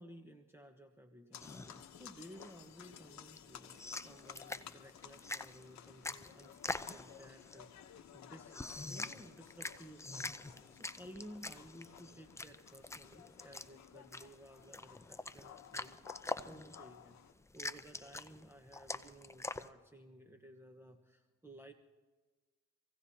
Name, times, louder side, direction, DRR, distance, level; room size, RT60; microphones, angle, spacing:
voice 1, 0.0-8.6 8.8-10.4 10.7-17.2 17.5-21.7, equal, 10° right, 4 dB, 1.2 m, -56 dB
sound 1, 1.3-17.3, left 9 dB, 65° left, 1.0 m, -56 dB
sound 2, 1.4-19.7, left 2 dB, 10° left, 0.5 m, -46 dB
25.5 x 16.5 x 2.8 m, 1.3 s
cardioid pair, 90°, 30 cm